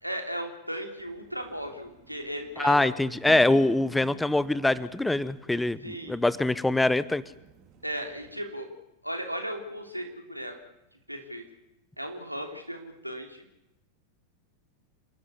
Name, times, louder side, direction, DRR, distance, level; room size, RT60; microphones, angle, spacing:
voice 1, 0.0-2.9 5.8-6.2 7.8-8.7 9.0-10.5 11.1-11.4 12.0-13.4, equal, 90° right, 4 dB, 3.4 m, -36 dB
sound 1, 1.0-8.4, right 8 dB, 40° right, 3.5 m, -51 dB
voice 2, 2.6-7.2, left 2 dB, 5° left, 18 dB, 0.8 m, -24 dB
27.5 x 13.0 x 9.8 m, 0.87 s
figure-of-eight pair, 90°, 0 cm